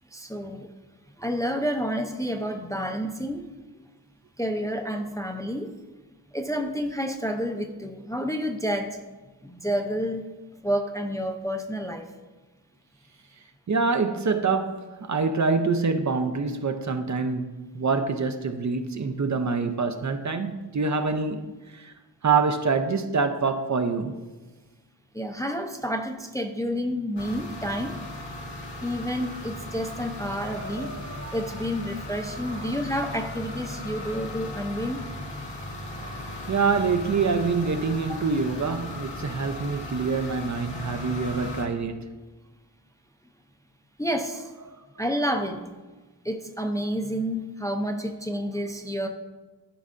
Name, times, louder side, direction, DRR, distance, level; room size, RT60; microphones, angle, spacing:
voice 1, 0.1-0.7 1.2-3.5 4.4-5.7 6.3-9.0 9.4-10.3 10.6-12.0 25.1-28.0 28.8-30.9 31.3-35.0 38.1-38.2 44.0-44.5 45.0-45.6 46.3-49.1, equal, 10° left, 0.5 m, -29 dB
voice 2, 13.7-21.9 22.2-24.2 30.3-31.4 32.5-32.7 35.9-42.1 44.7-44.8, right 4 dB, 45° right, 0.5 m, -26 dB
sound 1, 27.2-41.7, left 1 dB, 85° left, 1.4 m, -37 dB
13.0 x 5.4 x 2.5 m
wide cardioid pair, 120°, 42 cm